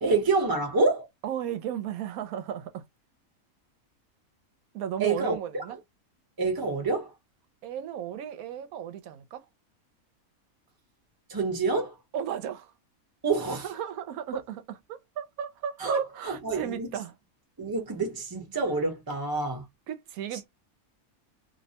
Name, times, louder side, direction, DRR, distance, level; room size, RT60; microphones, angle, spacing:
voice 1, 0.0-1.1 5.0-5.6 6.4-7.1 11.3-11.9 13.2-13.7 15.8-16.9 17.6-19.6, right 3 dB, 20° right, 0.8 m, -27 dB
voice 2, 1.2-2.9 4.7-5.8 7.6-9.5 12.1-12.7 13.5-17.1 19.9-20.5, right 9 dB, 85° right, 1.0 m, -34 dB
2.6 x 2.1 x 2.7 m
omnidirectional pair, 1.5 m